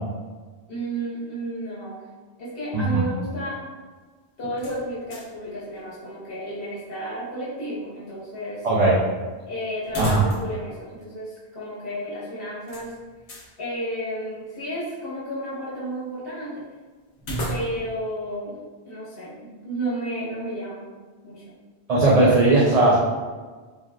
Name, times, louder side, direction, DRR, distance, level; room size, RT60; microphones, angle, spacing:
voice 1, 0.7-2.0 2.4-3.7 4.4-8.7 9.5-12.9 13.6-16.7 17.5-18.6 18.8-20.9 21.2-21.6, right 1 dB, 55° left, -9 dB, 1.1 m, -32 dB
voice 2, 2.7-3.0 8.6-8.9 10.0-10.2 21.9-23.0, right 2 dB, 60° right, -6 dB, 0.4 m, -18 dB
sound 1, 4.6-5.5 5.8-5.9 9.8-10.7 11.0-11.1 12.7-13.5 17.2-18.0, right 1 dB, 90° left, 0.9 m, -33 dB
3.3 x 2.3 x 2.2 m, 1.4 s
omnidirectional pair, 1.1 m